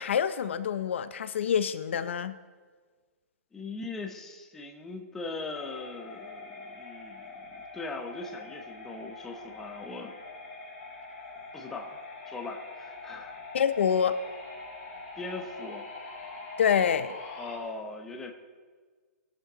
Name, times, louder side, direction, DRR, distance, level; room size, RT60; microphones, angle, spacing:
voice 1, 0.0-2.4 13.5-14.2 16.6-17.1, left 8 dB, 45° left, 13 dB, 0.5 m, -26 dB
voice 2, 3.5-10.1 11.5-12.0 12.3-13.3 15.2-15.9 17.4-18.3, left 3 dB, 5° left, 2 dB, 0.7 m, -40 dB
sound 1, 5.5-17.6, left 3 dB, 30° left, 4.9 m, -44 dB
21.5 x 11.5 x 3.9 m, 1.5 s
hypercardioid pair, 180°, 9 cm